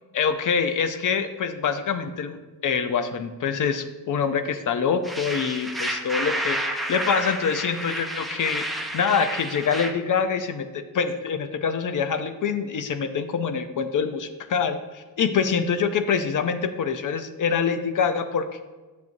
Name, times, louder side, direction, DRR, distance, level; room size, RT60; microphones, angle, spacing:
voice 1, 0.1-18.6, left 6 dB, 55° left, 9 dB, 0.7 m, -25 dB
sound 1, 5.0-9.9, right 1 dB, ahead, 0.7 m, -30 dB
9.3 x 6.9 x 2.7 m, 1.3 s
cardioid pair, 105°, 37 cm